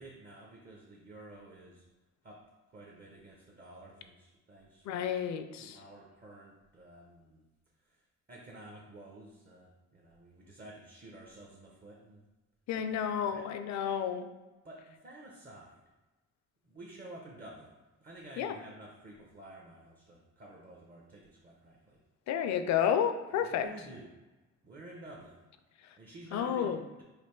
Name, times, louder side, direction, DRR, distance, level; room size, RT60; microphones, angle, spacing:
voice 1, 0.0-1.8 2.2-2.5 2.7-5.2 5.6-7.4 7.8-8.0 8.3-12.2 12.7-13.4 14.6-15.8 16.6-22.0 23.3-24.1 24.6-25.4 26.0-26.7, right 1 dB, 30° right, -2 dB, 0.7 m, -51 dB
voice 2, 4.8-5.8 12.7-14.3 18.4-18.6 22.3-23.7 25.8-26.0 26.3-26.8, left 8 dB, 65° left, 9 dB, 0.4 m, -31 dB
3.3 x 2.5 x 4.4 m, 1.1 s
cardioid pair, 90°, 30 cm